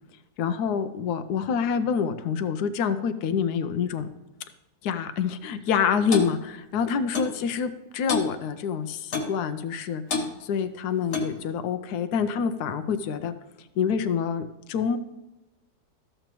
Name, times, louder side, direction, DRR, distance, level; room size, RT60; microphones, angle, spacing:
voice 1, 0.4-4.1 4.8-10.0 10.4-13.3 13.8-15.0, left 6 dB, 85° left, 9 dB, 1.1 m, -27 dB
Clock, 6.1-6.3 7.1-7.4 8.1-8.3 9.1-9.4 10.1-10.3 11.1-11.4, left 4 dB, 50° left, 1.2 m, -28 dB
13.5 x 6.6 x 3.0 m, 0.98 s
omnidirectional pair, 1.6 m